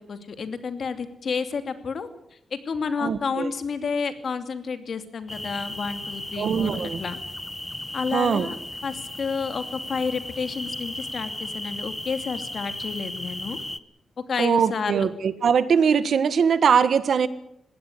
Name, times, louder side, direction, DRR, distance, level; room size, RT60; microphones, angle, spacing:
voice 1, 0.0-7.2 7.9-8.6 8.8-13.6 14.3-15.1, left 5 dB, 60° left, 9 dB, 2.7 m, -30 dB
voice 2, 3.0-3.5 6.4-7.0 8.1-8.5 14.4-17.3, right 6 dB, 70° right, 14 dB, 1.5 m, -21 dB
sound 1, 5.3-13.8, left 1 dB, 10° left, 1.0 m, -35 dB
21.0 x 17.0 x 9.8 m, 0.78 s
cardioid pair, 100°, 0 cm